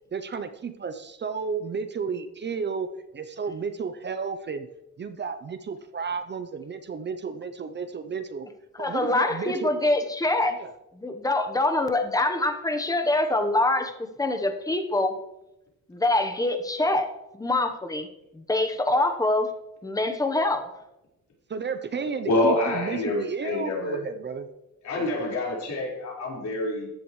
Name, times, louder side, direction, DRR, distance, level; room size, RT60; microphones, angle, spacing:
voice 1, 0.1-2.9 3.1-4.7 5.0-8.5 8.8-9.8 10.5-10.7 21.5-24.5 24.9-25.3, right 5 dB, 35° right, 9 dB, 0.7 m, -32 dB
voice 2, 8.8-10.6 11.0-15.1 15.9-18.1 18.3-19.5 19.8-20.7, left 2 dB, 10° left, 6 dB, 1.1 m, -25 dB
voice 3, 22.3-24.0 24.8-26.9, left 2 dB, 60° left, -4 dB, 4.9 m, -27 dB
14.5 x 10.5 x 3.2 m, 0.91 s
cardioid pair, 135°, 31 cm